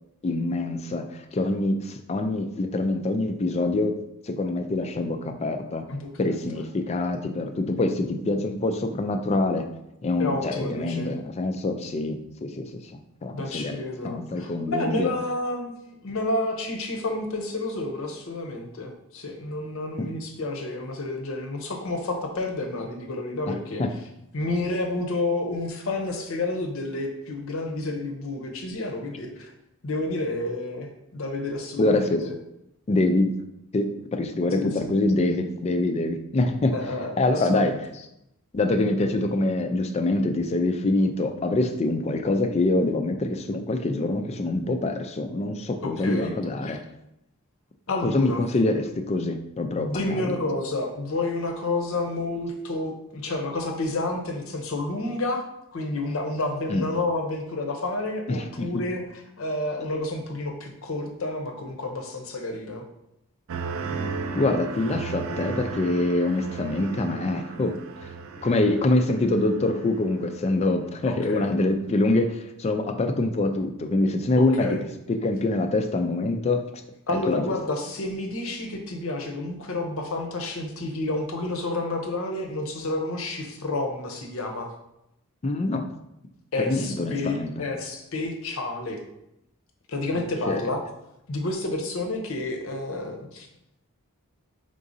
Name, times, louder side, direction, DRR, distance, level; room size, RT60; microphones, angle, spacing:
voice 1, 0.2-4.0 4.2-5.8 6.2-9.7 10.0-12.9 13.2-13.7 14.0-15.1 20.0-20.1 23.5-23.9 31.8-32.2 32.9-33.3 33.7-33.9 34.1-36.7 37.2-37.7 38.5-46.8 48.0-50.4 56.7-56.9 58.3-58.7 64.3-68.1 68.4-74.7 75.1-76.6 77.2-77.4 85.4-85.9 86.7-87.5 90.5-90.7, left 2 dB, 30° left, 7 dB, 0.3 m, -25 dB
voice 2, 5.9-6.4 10.2-11.1 13.3-15.7 16.0-23.8 24.3-29.5 29.8-32.3 34.5-34.9 36.7-37.8 45.8-46.3 46.6-46.8 47.9-48.4 49.8-55.4 55.7-62.8 71.1-71.5 74.3-74.8 77.1-84.7 86.5-89.0 89.9-90.8 91.3-93.5, left 2 dB, 65° left, 3 dB, 0.7 m, -30 dB
sound 1, 63.5-70.6 71.0-71.5, right 4 dB, 70° right, 0.4 m, -35 dB
4.9 x 3.7 x 2.6 m, 0.83 s
head